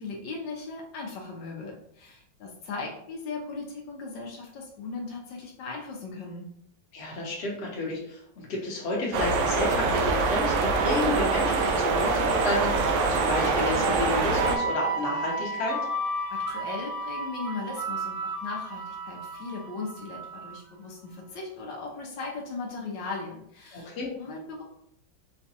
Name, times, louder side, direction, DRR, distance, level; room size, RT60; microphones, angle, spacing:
voice 1, 0.0-6.5 16.3-24.6, left 4 dB, 75° left, -2 dB, 1.3 m, -38 dB
voice 2, 6.9-15.8 23.7-24.1, left 2 dB, 45° left, -3 dB, 1.0 m, -31 dB
sound 1, 9.1-14.6, right 4 dB, 80° right, 1.3 m, -24 dB
sound 2, 10.9-20.6, right 1 dB, 35° right, 0.9 m, -34 dB
4.9 x 2.2 x 2.7 m, 0.72 s
omnidirectional pair, 2.1 m